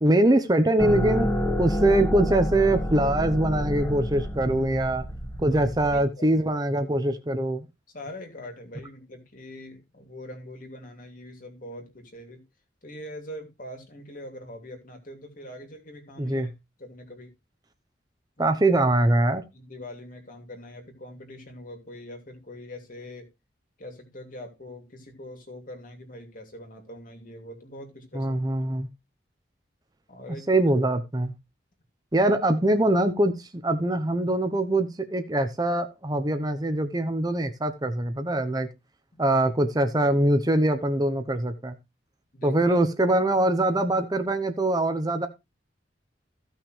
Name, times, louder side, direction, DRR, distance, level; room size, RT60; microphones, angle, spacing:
voice 1, 0.0-1.3 1.6-5.0 5.4-7.7 16.2-16.5 18.4-19.4 28.1-28.9 30.5-31.3 32.1-38.7 39.2-41.8 42.4-45.3, right 1 dB, 20° right, 9 dB, 0.8 m, -23 dB
sound 1, 0.8-6.0, equal, 10° left, 1.6 m, -28 dB
voice 2, 5.9-6.5 7.9-12.4 12.8-16.5 16.8-17.3 18.4-18.9 19.5-23.3 23.8-28.4 30.1-30.7 32.2-32.3 39.1-39.3 42.3-42.8, left 1 dB, 45° left, 5 dB, 2.7 m, -43 dB
15.0 x 6.1 x 3.2 m, 0.24 s
head